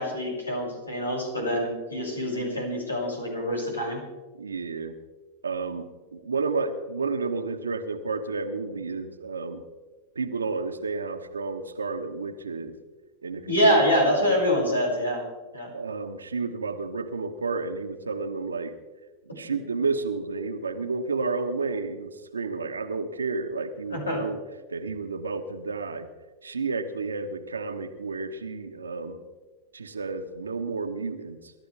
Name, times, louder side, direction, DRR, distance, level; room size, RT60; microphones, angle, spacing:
voice 1, 0.0-4.0 13.5-15.2 15.5-15.7 19.3-19.4 23.9-24.2, equal, 90° left, -2 dB, 6.8 m, -25 dB
voice 2, 4.3-5.0 5.4-9.6 10.1-12.8 13.2-13.8 15.7-18.7 19.4-24.4 24.7-26.1 26.4-29.2 29.7-31.5, right 4 dB, 85° right, 7 dB, 1.5 m, -31 dB
28.0 x 13.0 x 3.5 m, 1.3 s
figure-of-eight pair, 90°, 0 cm